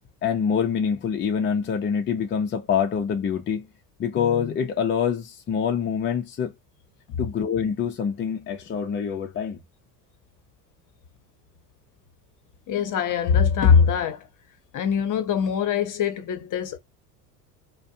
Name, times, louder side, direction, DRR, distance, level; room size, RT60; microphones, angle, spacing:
voice 1, 0.2-3.7 4.0-6.5 7.2-9.6, left 7 dB, 25° left, 0.5 m, -25 dB
voice 2, 12.7-14.3 14.7-16.8, left 7 dB, 40° left, 0.8 m, -22 dB
2.5 x 2.2 x 2.6 m
hypercardioid pair, 80°, 48 cm